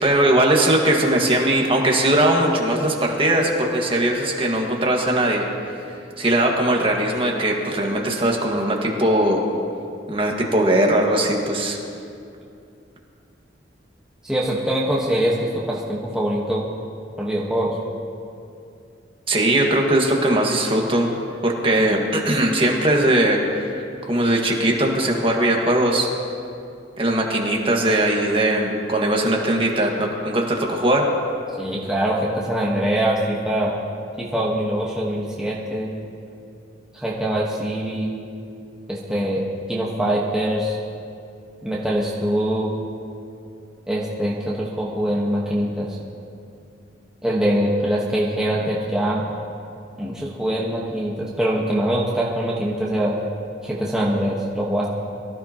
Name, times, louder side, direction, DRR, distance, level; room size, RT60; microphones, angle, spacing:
voice 1, 0.0-5.4 6.2-9.4 10.1-11.8 19.3-21.1 21.4-23.7 24.0-26.1 27.0-31.1, right 1 dB, 30° right, 0 dB, 1.6 m, -20 dB
voice 2, 14.2-16.7 17.2-17.8 31.6-33.7 34.2-35.9 36.9-38.1 38.9-39.4 39.7-40.8 41.6-42.7 43.9-45.9 47.2-49.2 50.0-53.1 53.6-54.9, right 1 dB, 5° right, -5 dB, 1.2 m, -23 dB
23.5 x 13.5 x 2.9 m, 2.5 s
head